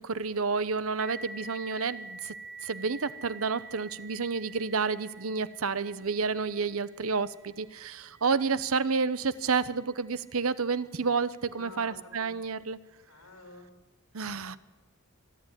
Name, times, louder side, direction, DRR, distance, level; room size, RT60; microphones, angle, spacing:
voice 1, 0.0-2.3 2.6-12.8 14.1-14.6, right 5 dB, 90° right, 16 dB, 0.9 m, -30 dB
sound 1, 1.0-10.2, right 3 dB, 5° left, 1.9 m, -48 dB
voice 2, 11.5-12.4 13.1-13.8, left 3 dB, 85° left, 4 dB, 5.6 m, -49 dB
25.0 x 12.5 x 9.9 m, 1.2 s
head